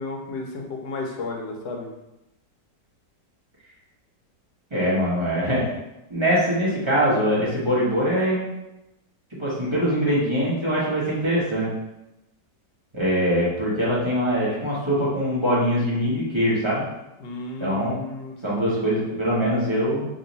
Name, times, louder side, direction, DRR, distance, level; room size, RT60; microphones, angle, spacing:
voice 1, 0.0-1.9 17.2-19.3, left 2 dB, 70° left, 1 dB, 1.3 m, -33 dB
voice 2, 4.7-5.7 6.1-8.5 9.4-11.7 12.9-16.8 17.6-17.9 18.4-20.1, equal, 20° right, -8 dB, 0.8 m, -23 dB
3.0 x 2.9 x 3.9 m, 0.91 s
omnidirectional pair, 1.9 m